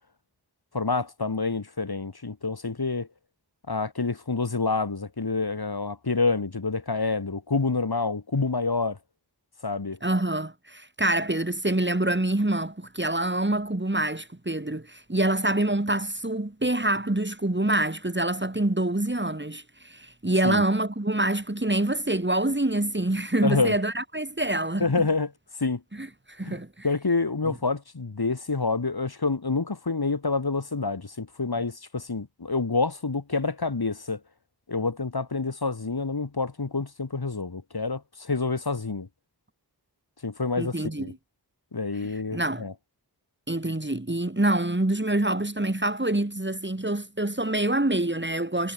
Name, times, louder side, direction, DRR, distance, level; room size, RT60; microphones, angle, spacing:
voice 1, 0.7-3.1 3.7-9.0 9.6-10.0 20.4-20.6 23.4-23.7 24.8-25.3 25.6-25.8 26.4-34.2 34.7-39.1 40.2-41.1 41.7-42.7, left 3 dB, 65° left, 3.1 m, -27 dB
voice 2, 10.0-24.9 26.0-26.9 40.6-41.2 42.3-42.7 43.5-48.7, right 1 dB, 25° right, 4.3 m, -26 dB
wide cardioid pair, 55°, 40 cm